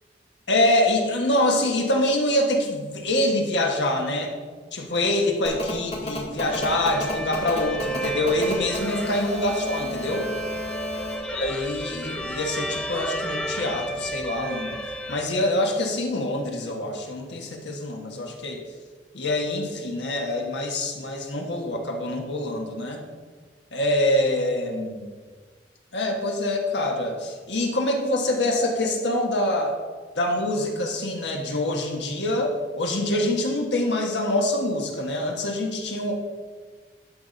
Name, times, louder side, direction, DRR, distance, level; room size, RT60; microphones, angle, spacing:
voice 1, 0.5-4.3 4.7-10.3 11.3-14.7 15.1-18.6 19.1-23.0 23.7-25.1 25.9-29.8 30.1-36.1, left 1 dB, 90° left, 1 dB, 1.5 m, -25 dB
Telephone, 5.5-11.2, left 2 dB, 35° left, 2.2 m, -32 dB
sound 1, 6.5-15.2, right 1 dB, 5° left, 0.4 m, -33 dB
11.5 x 4.2 x 5.3 m, 1.5 s
head